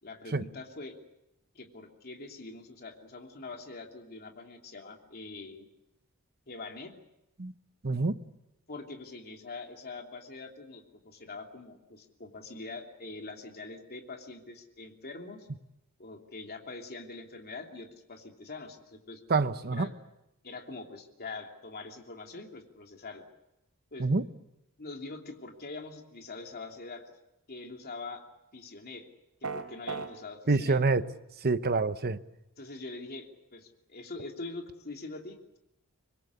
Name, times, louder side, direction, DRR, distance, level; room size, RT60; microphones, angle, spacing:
voice 1, 0.0-1.0 1.5-5.7 6.5-6.9 8.7-15.5 16.0-19.2 19.7-19.9 20.4-23.2 23.9-24.1 24.8-27.1 27.5-28.2 28.5-29.1 29.4-30.8 32.6-35.6, left 3 dB, 45° left, 3.0 m, -44 dB
voice 2, 7.8-8.2 19.3-19.9 24.0-24.3 30.5-31.0 31.4-32.2, right 3 dB, 45° right, 1.0 m, -26 dB
sound 1, 29.4-30.1, right 4 dB, 90° right, 3.5 m, -34 dB
25.0 x 21.5 x 8.4 m
head